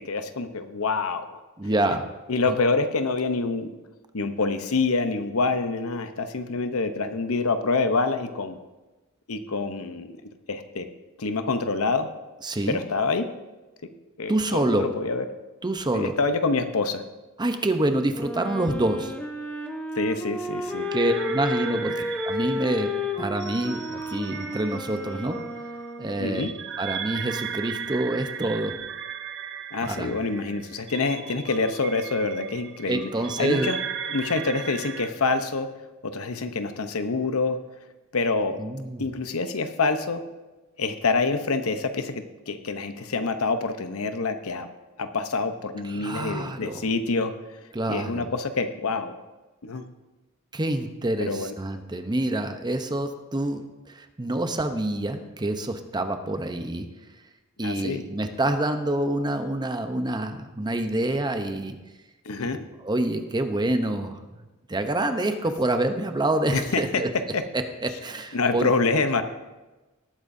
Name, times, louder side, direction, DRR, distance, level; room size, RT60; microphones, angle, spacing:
voice 1, 0.0-1.4 2.3-3.7 4.1-8.6 9.3-10.1 10.5-10.9 11.2-12.1 12.7-13.3 14.2-15.2 15.9-17.0 20.0-20.9 21.7-21.8 26.2-26.5 29.7-33.1 33.4-33.8 34.1-35.7 36.0-37.6 38.1-38.6 39.0-40.2 40.8-44.7 45.0-47.3 47.9-49.1 49.6-49.8 51.2-51.5 57.6-58.0 62.2-62.6 66.5-67.0 67.3-67.4 68.3-69.2, left 3 dB, 85° left, 9 dB, 0.9 m, -26 dB
voice 2, 1.6-2.1 12.4-12.8 14.3-14.9 15.6-16.1 17.4-19.2 20.9-25.4 26.0-26.5 26.8-28.8 29.8-30.1 32.9-33.7 38.6-39.1 45.8-46.9 47.7-48.3 50.5-56.9 57.6-61.8 62.4-62.5 62.8-64.2 64.7-67.1 67.5-68.7, right 1 dB, 20° right, 7 dB, 0.8 m, -27 dB
Wind instrument woodwind instrument, 18.1-26.5, left 2 dB, 5° left, 1.0 m, -32 dB
sound 1, 20.6-35.1, right 8 dB, 60° right, 0.7 m, -37 dB
18.5 x 8.8 x 2.7 m, 1.1 s
head